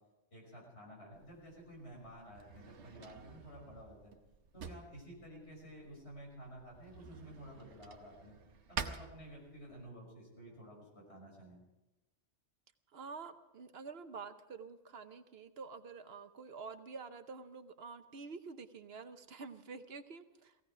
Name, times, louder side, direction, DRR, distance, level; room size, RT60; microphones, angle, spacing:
voice 1, 0.3-4.1 4.5-8.4 8.7-11.6, equal, 70° left, -2 dB, 6.1 m, -52 dB
Drawer open or close, 1.1-9.9, right 6 dB, 90° right, 1.3 m, -49 dB
voice 2, 12.9-20.6, right 4 dB, 65° right, 9 dB, 1.1 m, -48 dB
17.5 x 16.5 x 4.9 m, 1.0 s
omnidirectional pair, 1.1 m